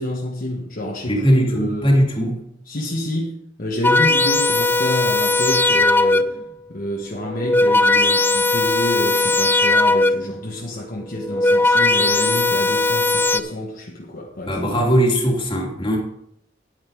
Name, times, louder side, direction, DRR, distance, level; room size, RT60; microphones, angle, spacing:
voice 1, 0.0-1.9 2.7-3.3 3.6-6.4 6.7-14.6, left 1 dB, 50° left, -1 dB, 1.4 m, -28 dB
voice 2, 1.1-2.4 14.4-16.0, equal, 30° left, -1 dB, 2.4 m, -19 dB
sound 1, 3.8-6.5 7.2-10.4 11.1-13.4, left 2 dB, 10° left, 0.4 m, -18 dB
10.5 x 8.9 x 4.7 m, 0.76 s
head